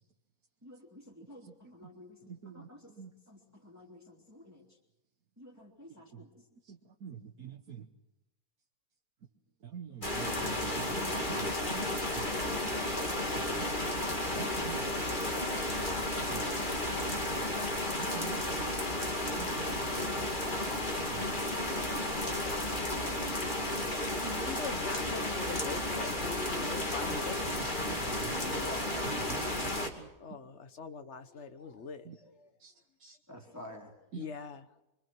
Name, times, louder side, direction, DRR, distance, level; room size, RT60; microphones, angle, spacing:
voice 1, 0.6-2.9 3.3-4.8 5.4-6.5 28.4-28.9 33.3-33.9, left 1 dB, 10° right, 0 dB, 3.0 m, -53 dB
voice 2, 2.3-2.7 3.0-3.1 6.1-6.2 6.7-7.9 9.6-11.8 12.2-12.3 13.3-13.7 14.3-14.9 16.3-16.5 17.0-17.2 18.0-20.3 21.1-21.3 27.1-28.4 29.1-30.1 32.1-32.2 32.6-32.7 33.0-33.2 34.1-34.3, right 7 dB, 75° right, 3 dB, 1.7 m, -46 dB
sound 1, 10.0-29.9, left 1 dB, 30° left, 2.7 m, -33 dB
voice 3, 24.2-27.6 30.2-32.3 34.2-34.6, left 5 dB, 50° left, 10 dB, 1.4 m, -42 dB
25.5 x 24.5 x 6.1 m, 0.94 s
omnidirectional pair, 1.6 m